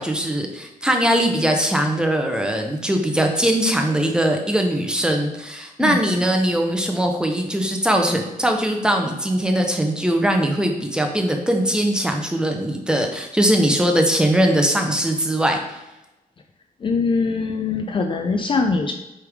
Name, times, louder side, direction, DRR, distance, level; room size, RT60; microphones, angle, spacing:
voice 1, 0.0-15.6, right 1 dB, 5° right, 3 dB, 0.7 m, -21 dB
voice 2, 5.8-6.2 16.8-18.9, left 4 dB, 35° left, 4 dB, 0.4 m, -22 dB
8.0 x 3.4 x 3.5 m, 0.97 s
wide cardioid pair, 145°, 15 cm